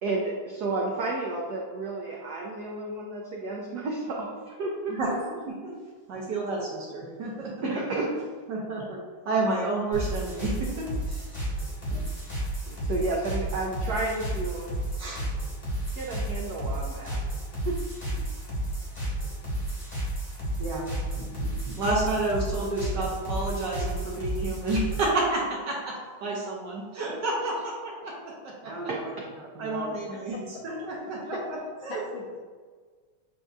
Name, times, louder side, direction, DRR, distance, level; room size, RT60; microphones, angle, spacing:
voice 1, 0.0-5.2 7.6-8.2 12.7-14.7 15.9-17.2 17.6-17.8 28.9-29.3, right 2 dB, 85° right, -2 dB, 0.8 m, -31 dB
voice 2, 5.0-5.3 5.6-5.7 6.1-7.5 8.5-11.2 11.9-12.0 15.0-15.2 20.6-20.9 21.2-25.9 26.2-29.1 29.6-30.4 30.6-31.4 31.8-32.0, right 2 dB, 65° right, -3 dB, 1.2 m, -30 dB
sound 1, 9.9-25.2, right 1 dB, 25° left, 0.9 m, -32 dB
voice 3, 30.1-30.7 31.3-31.4 31.9-32.4, left 4 dB, 75° left, 0 dB, 1.2 m, -40 dB
7.6 x 2.6 x 2.3 m, 1.5 s
omnidirectional pair, 2.3 m